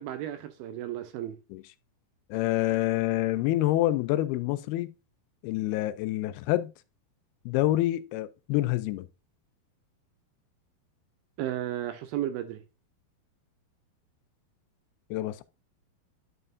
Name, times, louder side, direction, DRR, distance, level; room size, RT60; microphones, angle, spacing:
voice 1, 0.0-1.4 11.4-12.6, right 12 dB, 85° right, 2.4 m, -33 dB
voice 2, 2.3-4.9 5.4-6.7 7.5-9.1 15.1-15.4, left 15 dB, 90° left, 2.5 m, -27 dB
11.0 x 5.6 x 2.5 m
omnidirectional pair, 4.4 m